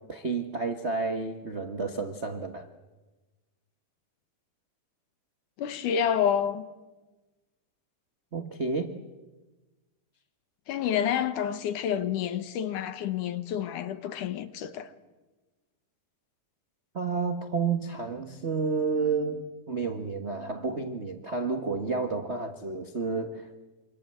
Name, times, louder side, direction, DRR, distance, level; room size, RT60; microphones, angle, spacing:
voice 1, 0.1-2.7 8.3-8.9 16.9-23.6, right 4 dB, 65° right, 0.6 m, -30 dB
voice 2, 5.6-6.7 10.7-14.9, left 9 dB, 75° left, 2.8 m, -29 dB
26.5 x 25.5 x 7.8 m
omnidirectional pair, 3.7 m